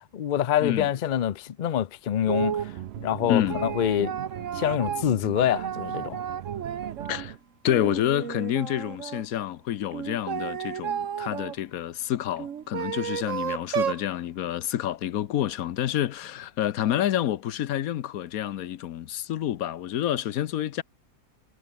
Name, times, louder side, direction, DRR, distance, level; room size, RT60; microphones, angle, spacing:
voice 1, 0.1-2.7 3.0-4.1 4.5-6.2, left 10 dB, 90° left, 0.4 m, -26 dB
sound 1, 2.3-2.7 3.2-7.2 7.7-9.2 9.9-11.6 12.4-14.1, right 8 dB, 55° right, 1.4 m, -32 dB
sound 2, 2.3-7.4, right 12 dB, 75° right, 0.5 m, -39 dB
voice 2, 3.3-3.6 7.1-7.4 7.6-20.8, left 12 dB, 65° left, 1.2 m, -28 dB
omnidirectional pair, 1.7 m